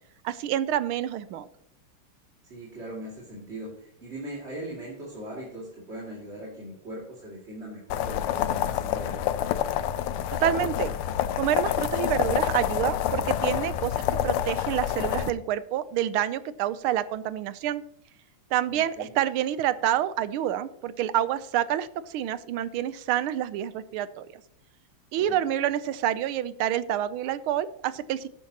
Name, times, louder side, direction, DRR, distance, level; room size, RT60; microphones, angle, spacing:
voice 1, 0.2-1.5 10.3-10.9 11.4-17.8 18.5-24.3 25.1-28.3, right 11 dB, 80° right, 15 dB, 1.4 m, -28 dB
voice 2, 2.4-9.3 18.7-19.1 25.1-25.4, right 1 dB, 30° right, -6 dB, 2.6 m, -40 dB
sound 1, 7.9-15.3, left 11 dB, 85° left, 1.5 m, -27 dB
13.5 x 9.9 x 2.9 m, 0.75 s
omnidirectional pair, 2.4 m